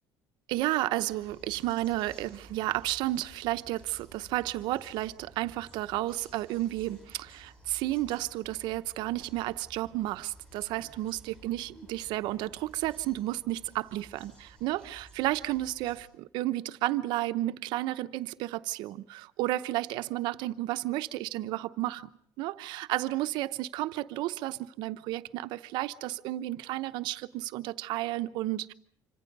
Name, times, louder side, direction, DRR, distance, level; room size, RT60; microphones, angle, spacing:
voice 1, 0.5-22.1 22.4-28.7, right 16 dB, 70° right, 0.9 m, -32 dB
sound 1, 1.1-16.0, right 1 dB, 10° left, 7.6 m, -55 dB
26.5 x 25.0 x 5.4 m
cardioid pair, 160°, 8 cm